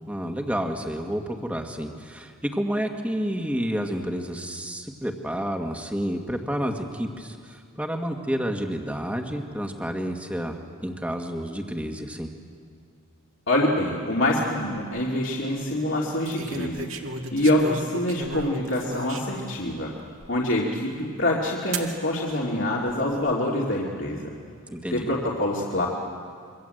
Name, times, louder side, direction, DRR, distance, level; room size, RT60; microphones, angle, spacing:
voice 1, 0.1-12.3 24.7-25.1, equal, 5° right, 3 dB, 1.8 m, -30 dB
voice 2, 13.5-16.9 17.3-19.9 20.3-24.3 24.9-25.9, left 1 dB, 55° left, -3 dB, 2.8 m, -25 dB
sound 1, 14.6-15.0 16.3-19.6 20.2-20.3 21.7-21.9 22.8-23.3, right 2 dB, 70° right, 2.0 m, -35 dB
27.0 x 24.0 x 8.0 m, 2.3 s
head